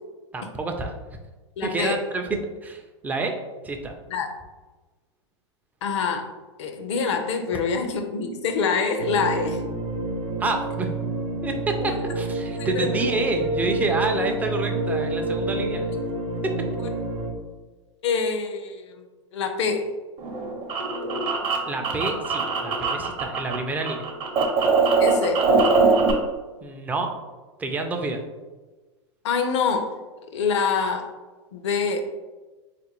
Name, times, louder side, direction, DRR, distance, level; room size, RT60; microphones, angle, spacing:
voice 1, 0.3-0.9 1.6-3.3 3.6-3.9 10.4-10.9 11.4-15.9 16.4-16.5 21.7-24.0 26.6-27.1 27.6-28.2, right 3 dB, 10° right, 3 dB, 0.4 m, -28 dB
voice 2, 1.6-2.0 4.1-4.3 5.8-6.3 6.6-9.6 11.8-11.9 12.6-12.9 18.0-19.0 19.3-19.9 25.0-25.5 29.2-29.9 30.3-31.1 31.5-32.0, left 5 dB, 70° left, 6 dB, 0.6 m, -25 dB
sound 1, 9.0-17.3, right 2 dB, 70° right, 0.6 m, -28 dB
sound 2, 20.2-23.6 23.8-26.1, right 4 dB, 35° right, 0.7 m, -22 dB
3.9 x 2.5 x 2.9 m, 1.2 s
hypercardioid pair, 105°, 15 cm